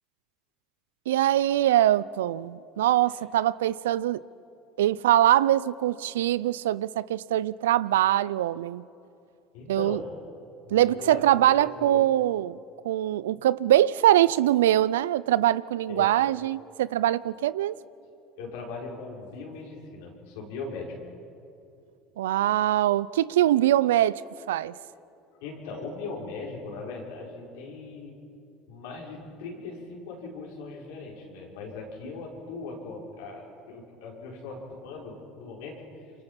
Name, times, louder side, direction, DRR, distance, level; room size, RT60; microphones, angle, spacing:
voice 1, 1.1-4.2 4.8-8.8 9.7-10.0 10.7-12.6 12.8-17.7 22.2-24.2 24.5-24.7, right 13 dB, 85° right, 0.5 m, -23 dB
voice 2, 9.5-10.1 10.6-11.2 11.6-12.0 15.9-16.1 18.4-21.1 25.4-28.1 28.7-36.1, left 4 dB, 75° left, 5.4 m, -39 dB
27.5 x 25.0 x 5.9 m
hypercardioid pair, 80°, 0 cm